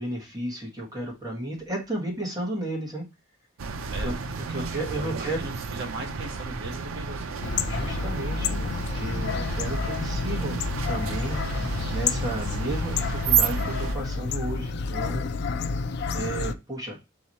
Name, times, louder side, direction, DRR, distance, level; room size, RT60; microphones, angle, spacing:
voice 1, 0.0-3.1 4.0-4.1 4.5-5.5 7.7-11.4 11.9-15.3 16.1-17.0, right 1 dB, 20° right, -2 dB, 1.5 m, -33 dB
sound 1, 3.6-14.0, right 6 dB, 90° right, 0.5 m, -31 dB
voice 2, 3.7-4.2 4.5-7.4, right 2 dB, 55° right, 2 dB, 1.4 m, -39 dB
sound 2, 7.4-16.5, left 4 dB, 55° left, 0.3 m, -30 dB
3.9 x 3.0 x 4.1 m, 0.26 s
head